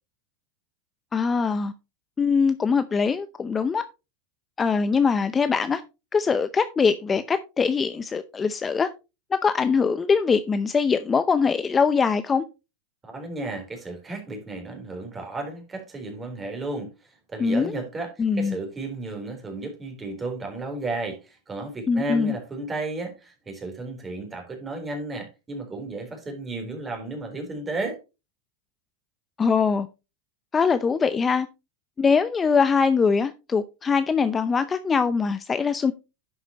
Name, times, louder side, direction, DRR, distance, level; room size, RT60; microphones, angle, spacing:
voice 1, 1.1-1.7 2.2-3.8 4.6-5.8 6.1-8.9 9.3-12.4 17.4-17.7 18.2-18.6 21.9-22.3 29.4-29.9 30.5-31.5 32.0-35.9, left 5 dB, 20° left, 0.6 m, -22 dB
voice 2, 13.0-28.0, right 2 dB, 15° right, 3.9 m, -33 dB
11.0 x 8.0 x 3.0 m
supercardioid pair, 135°, 0 cm